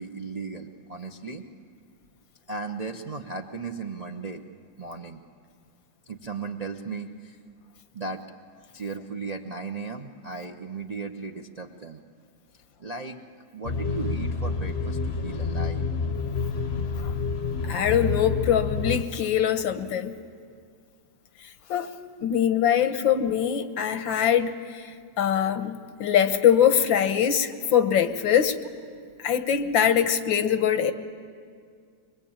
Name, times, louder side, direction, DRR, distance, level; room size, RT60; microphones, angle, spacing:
voice 1, 0.0-1.4 2.5-4.4 4.8-5.2 6.1-7.4 7.9-8.2 8.7-12.0 12.8-13.2 13.5-15.8 22.9-23.0, right 4 dB, 50° right, 3 dB, 0.4 m, -36 dB
sound 1, 13.6-19.0, left 4 dB, 45° left, 0.8 m, -28 dB
voice 2, 17.7-20.2 21.7-21.9 22.2-28.6 29.2-30.9, left 9 dB, 90° left, 9 dB, 1.8 m, -23 dB
24.0 x 22.5 x 8.8 m, 2.2 s
omnidirectional pair, 2.0 m